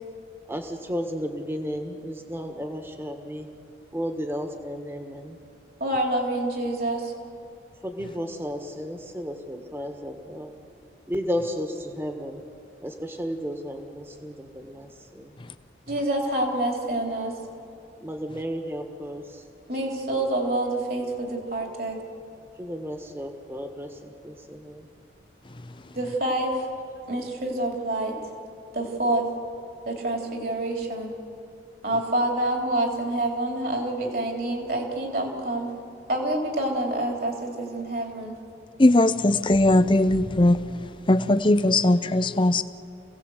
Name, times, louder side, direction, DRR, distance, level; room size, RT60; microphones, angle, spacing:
voice 1, 0.5-3.5 3.9-5.4 7.8-10.5 11.1-12.4 12.8-15.3 18.0-19.5 22.6-24.9, equal, 15° right, 1.5 m, -33 dB
voice 2, 5.8-7.1 15.9-17.4 19.7-22.0 25.9-26.7 27.1-28.2 28.7-29.3 29.9-31.1 31.8-35.7 36.1-38.3, right 1 dB, 55° right, 3.5 m, -27 dB
voice 3, 38.8-40.6 41.1-42.6, left 1 dB, 25° left, 0.6 m, -19 dB
27.5 x 17.5 x 8.0 m
head